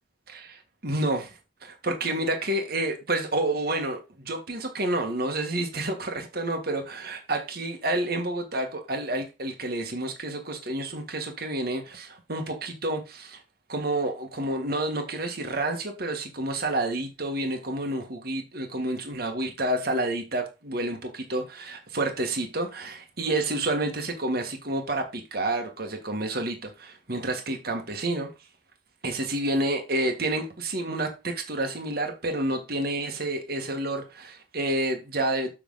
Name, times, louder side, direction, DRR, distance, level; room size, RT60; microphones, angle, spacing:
voice 1, 0.3-13.4 13.7-28.3 29.0-35.5, right 1 dB, 55° right, 1.9 m, -29 dB
7.6 x 6.0 x 4.0 m
head